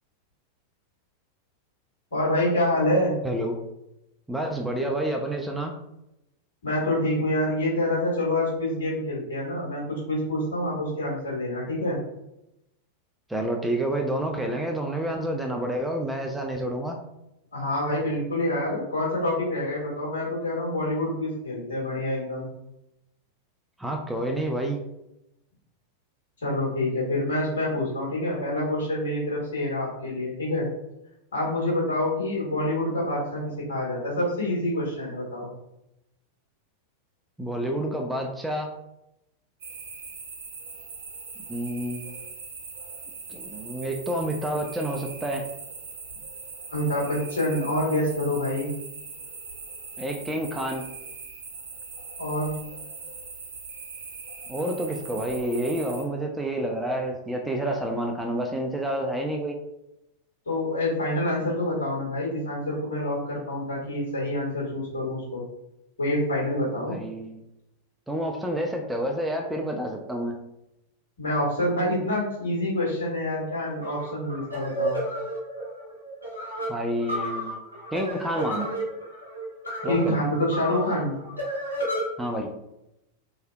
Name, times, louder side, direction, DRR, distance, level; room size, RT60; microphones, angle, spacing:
voice 1, 2.1-3.1 6.6-12.0 17.5-22.5 26.4-30.7 31.3-33.4 33.7-35.5 46.7-48.7 52.2-52.5 60.4-65.4 66.0-67.0 71.2-75.0 79.9-81.2, left 1 dB, 65° left, -5 dB, 1.4 m, -27 dB
voice 2, 4.3-5.7 13.3-17.0 23.8-24.8 37.4-38.7 41.5-42.0 43.3-45.4 50.0-50.8 54.5-59.6 66.9-67.4 68.1-70.4 76.7-77.5 77.9-78.7 79.8-80.2 82.2-82.5, right 1 dB, 5° right, 2 dB, 0.4 m, -29 dB
sound 1, 39.6-56.0, right 4 dB, 60° right, 0.6 m, -41 dB
sound 2, 73.8-82.0, right 1 dB, 80° left, 0.9 m, -32 dB
3.2 x 2.7 x 2.2 m, 0.86 s
figure-of-eight pair, 90°, 0 cm